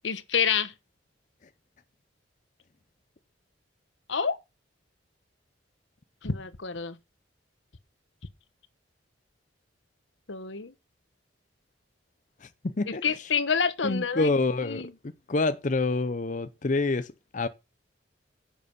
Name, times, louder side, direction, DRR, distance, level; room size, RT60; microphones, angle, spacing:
voice 1, 0.0-0.7 4.1-4.4 6.2-7.0 10.3-10.7 13.0-14.3 14.6-14.9, left 6 dB, 80° left, 1.1 m, -28 dB
voice 2, 13.8-14.9 15.3-17.5, left 3 dB, 40° left, 0.6 m, -27 dB
10.5 x 6.7 x 5.3 m
head